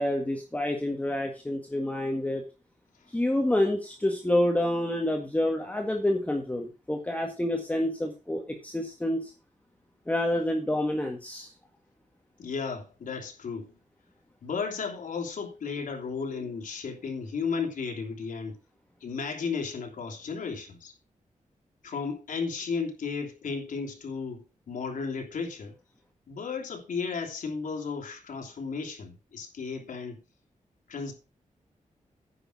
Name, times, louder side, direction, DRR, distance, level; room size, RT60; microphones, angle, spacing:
voice 1, 0.0-2.4 3.1-9.3 10.1-11.5, left 1 dB, 10° left, 1.7 m, -28 dB
voice 2, 12.4-13.7 14.4-18.5 19.0-20.9 21.8-25.7 26.3-30.2 30.9-31.1, left 5 dB, 80° left, 3.1 m, -34 dB
9.8 x 6.5 x 6.0 m
wide cardioid pair, 135°, 13 cm